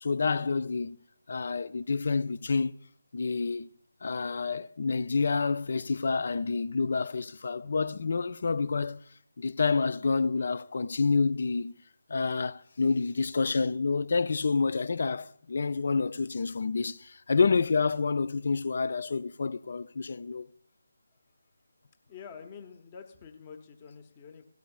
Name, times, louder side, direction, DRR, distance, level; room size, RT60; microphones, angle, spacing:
voice 1, 0.0-1.0 1.3-2.7 3.1-3.7 4.0-9.0 9.4-11.7 12.1-20.5, left 4 dB, 50° left, 0.5 m, -28 dB
voice 2, 22.1-24.5, left 6 dB, 25° left, 1.0 m, -47 dB
17.0 x 13.0 x 2.3 m
figure-of-eight pair, 155°, 0 cm